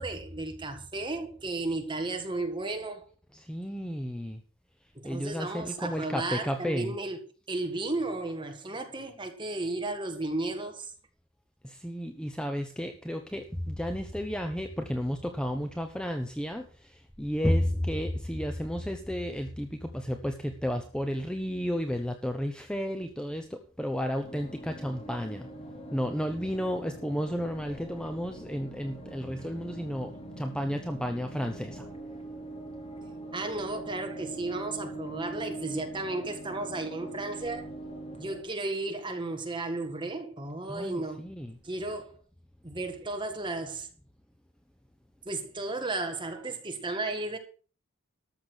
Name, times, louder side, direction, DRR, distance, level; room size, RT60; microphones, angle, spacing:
voice 1, 0.0-3.0 4.9-7.2 7.5-10.9 33.3-37.7 38.2-41.2 41.6-42.2 42.6-43.9 45.2-47.4, right 2 dB, 20° right, 1.7 m, -34 dB
voice 2, 3.3-4.4 5.0-6.9 11.6-25.5 25.9-31.9 40.7-41.6, equal, 5° left, 0.8 m, -32 dB
sound 1, 24.2-38.4, right 1 dB, 25° left, 2.0 m, -43 dB
13.0 x 6.7 x 6.1 m
head